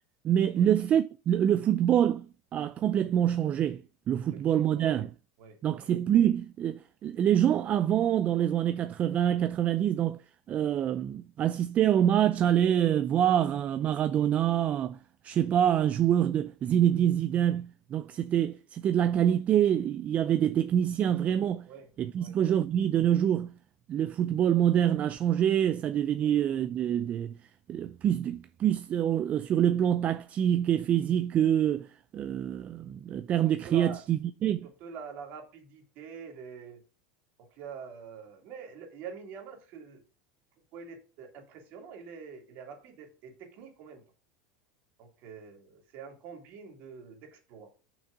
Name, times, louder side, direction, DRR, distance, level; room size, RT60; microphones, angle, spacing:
voice 1, 0.2-2.3 2.5-5.1 5.6-10.2 10.5-15.0 15.2-21.6 22.0-23.5 23.9-27.4 27.7-31.9 32.1-34.7, right 10 dB, 40° right, 0.5 m, -26 dB
voice 2, 4.2-5.0 5.4-5.9 21.7-21.9 22.2-22.4 26.2-26.3 33.6-34.0 34.6-36.8 37.4-40.0 40.7-44.0 45.0-47.7, right 6 dB, 55° right, 2.9 m, -45 dB
6.3 x 6.2 x 5.1 m
hypercardioid pair, 100°, 4 cm